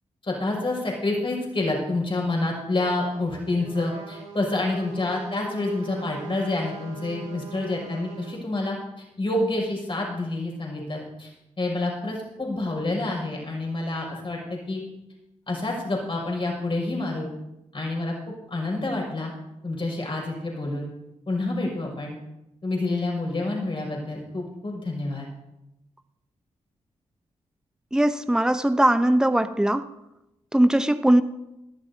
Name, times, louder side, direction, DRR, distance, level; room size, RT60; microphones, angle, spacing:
voice 1, 0.2-11.3 11.6-14.8 15.5-17.3 17.7-18.1 18.5-19.3 19.6-20.9 21.3-22.1 22.6-25.3, left 2 dB, 45° left, -2 dB, 5.9 m, -28 dB
Trumpet, 2.8-8.4, right 4 dB, 75° right, 2.3 m, -41 dB
voice 2, 27.9-29.8 30.5-31.2, right 1 dB, 5° right, 10 dB, 0.8 m, -20 dB
20.0 x 12.0 x 2.8 m, 0.91 s
supercardioid pair, 45°, 12 cm